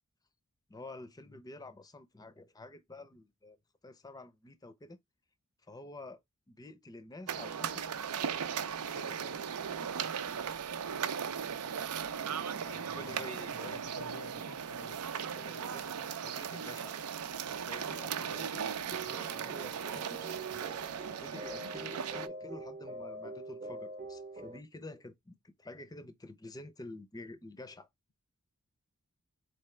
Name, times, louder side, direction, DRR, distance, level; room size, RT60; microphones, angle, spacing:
voice 1, 0.7-5.0 5.6-6.2 6.5-7.8 8.5-9.4 12.6-14.1 15.3-17.0 17.6-20.2 20.5-20.7 21.1-27.9, left 2 dB, 15° left, 0.5 m, -49 dB
sound 1, 7.3-22.3, right 7 dB, 90° right, 0.5 m, -37 dB
voice 2, 12.8-15.0, left 3 dB, 90° left, 0.9 m, -51 dB
sound 2, 18.9-24.6, right 2 dB, 35° right, 0.8 m, -44 dB
4.4 x 3.3 x 3.1 m
head